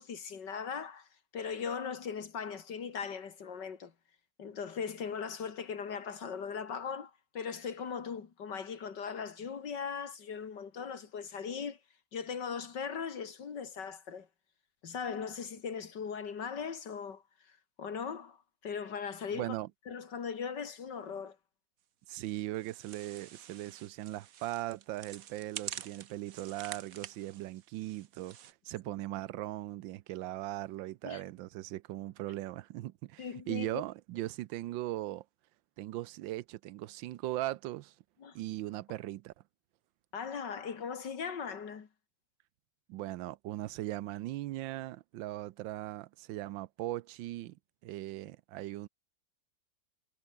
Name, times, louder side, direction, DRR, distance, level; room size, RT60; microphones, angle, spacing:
voice 1, 0.0-3.9 4.4-11.8 12.1-14.3 14.8-19.5 19.9-21.4 31.0-31.2 33.2-33.8 38.2-38.4 40.1-41.9, left 6 dB, 65° left, 2.6 m, -39 dB
voice 2, 19.3-19.7 22.1-28.4 28.6-35.2 35.8-37.9 38.3-39.3 42.9-47.6 47.8-48.9, right 15 dB, 85° right, 1.4 m, -39 dB
sound 1, 22.1-28.5, right 9 dB, 55° right, 1.3 m, -48 dB
omnidirectional pair, 2.0 m